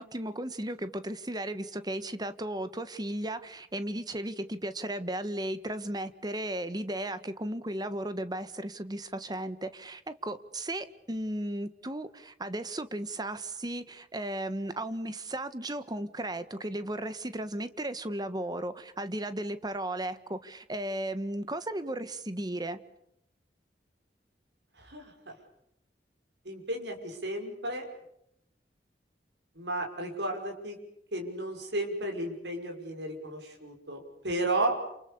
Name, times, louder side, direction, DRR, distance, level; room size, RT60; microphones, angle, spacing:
voice 1, 0.0-22.8, right 1 dB, 25° right, 12 dB, 1.5 m, -35 dB
voice 2, 24.8-25.3 26.4-27.8 29.6-30.8 31.1-34.8, right 1 dB, 80° right, 2 dB, 6.0 m, -33 dB
28.5 x 28.5 x 6.9 m, 0.77 s
head